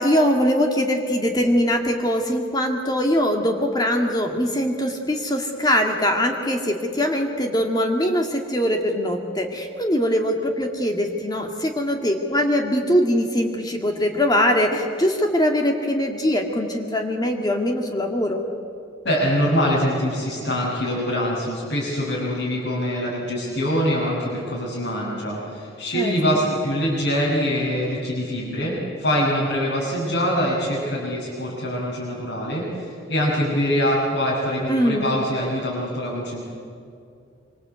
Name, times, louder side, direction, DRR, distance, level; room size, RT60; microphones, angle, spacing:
voice 1, 0.0-18.4 25.9-26.1 34.7-35.1, equal, 20° left, 2 dB, 1.9 m, -22 dB
voice 2, 19.0-36.4, equal, 75° left, -8 dB, 6.5 m, -24 dB
26.0 x 24.5 x 8.2 m, 2.4 s
head